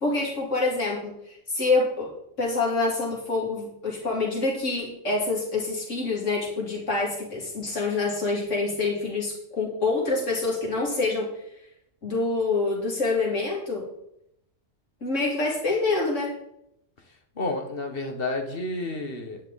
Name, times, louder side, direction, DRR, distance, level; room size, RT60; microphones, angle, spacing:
voice 1, 0.0-2.1 2.4-11.3 12.0-13.9 15.0-16.3, left 3 dB, 70° left, -2 dB, 3.0 m, -26 dB
voice 2, 17.3-19.4, left 2 dB, 50° left, 4 dB, 1.6 m, -30 dB
10.5 x 9.6 x 4.1 m, 0.77 s
omnidirectional pair, 1.3 m